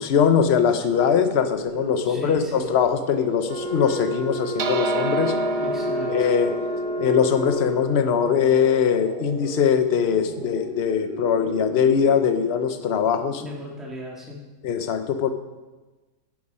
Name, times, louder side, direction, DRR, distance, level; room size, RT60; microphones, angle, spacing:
voice 1, 0.0-5.3 6.1-6.5 7.0-13.4 14.6-15.3, left 7 dB, 55° left, 9 dB, 0.7 m, -21 dB
sound 1, 0.9-13.7, right 3 dB, 30° right, 1.3 m, -36 dB
voice 2, 2.0-2.7 5.6-6.3 13.4-14.4, left 1 dB, ahead, -3 dB, 1.6 m, -36 dB
Wind instrument woodwind instrument, 3.5-8.1, left 1 dB, 80° right, 1.5 m, -30 dB
sound 2, 4.6-9.2, right 2 dB, 55° right, 0.8 m, -30 dB
11.0 x 7.1 x 5.4 m, 1.2 s
omnidirectional pair, 1.8 m